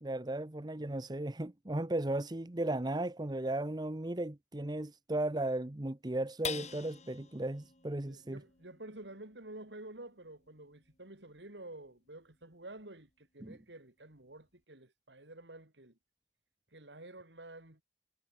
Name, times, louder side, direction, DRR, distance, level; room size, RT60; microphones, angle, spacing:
voice 1, 0.0-8.4 13.4-13.6, right 1 dB, 25° right, 0.9 m, -36 dB
sound 1, 6.4-13.1 13.6-13.7 14.1-14.6, left 6 dB, 40° left, 6.7 m, -48 dB
voice 2, 8.1-16.0 16.7-17.8, right 2 dB, 85° right, 4.4 m, -50 dB
head